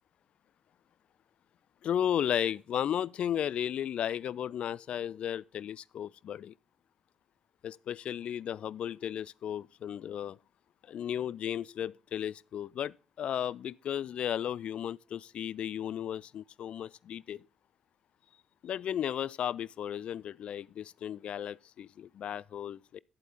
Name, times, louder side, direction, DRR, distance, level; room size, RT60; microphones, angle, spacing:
voice 1, 1.8-6.5 7.6-10.4 10.9-17.4 18.6-23.0, left 10 dB, 50° left, 0.4 m, -34 dB
11.0 x 8.0 x 3.8 m
figure-of-eight pair, 40°, 2 cm